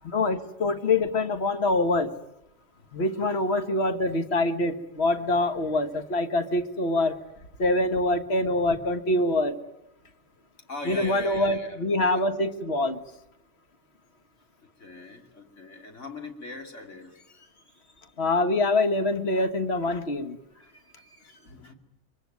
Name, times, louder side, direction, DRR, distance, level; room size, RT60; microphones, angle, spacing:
voice 1, 0.0-2.1 2.9-7.2 7.6-9.6 10.9-13.0 18.2-20.4, left 2 dB, 60° left, 8 dB, 1.7 m, -25 dB
voice 2, 10.7-12.2 14.8-17.6 18.0-18.1 20.5-21.7, left 2 dB, 80° left, 3 dB, 3.2 m, -42 dB
24.5 x 24.0 x 9.4 m, 0.85 s
omnidirectional pair, 1.2 m